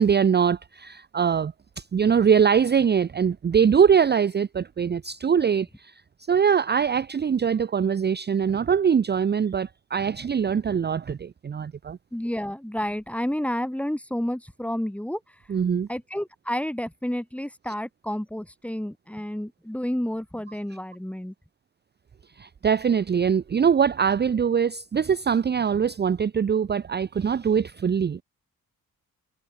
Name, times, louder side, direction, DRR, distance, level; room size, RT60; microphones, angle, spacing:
voice 1, 0.0-5.9 6.3-12.0 15.5-15.9 22.4-28.2, right 7 dB, 30° right, 0.5 m, -22 dB
voice 2, 12.1-15.2 15.9-21.3, equal, 5° left, 1.5 m, -30 dB
cardioid pair, 75°, 35 cm